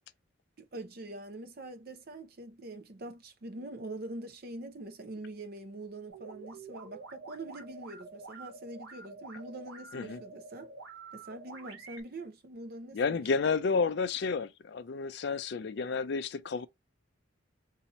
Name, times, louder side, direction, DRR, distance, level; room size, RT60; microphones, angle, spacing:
voice 1, 0.6-10.7 11.1-13.2, right 2 dB, 50° right, 0.6 m, -44 dB
sound 1, 6.1-12.0, right 3 dB, 90° right, 1.4 m, -48 dB
voice 2, 12.9-16.7, left 5 dB, 60° left, 0.4 m, -31 dB
4.1 x 2.8 x 2.9 m
head